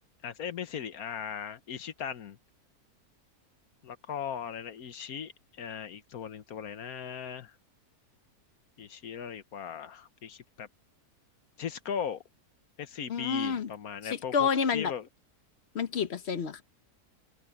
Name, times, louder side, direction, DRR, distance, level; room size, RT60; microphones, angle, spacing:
voice 1, 0.2-2.4 3.8-5.3 5.6-7.5 8.8-10.7 11.6-12.2 12.8-15.1, left 8 dB, 70° left, 1.5 m, -38 dB
voice 2, 13.1-13.7 14.0-14.9 15.7-16.6, left 6 dB, 45° left, 1.2 m, -29 dB
open air
omnidirectional pair, 1.6 m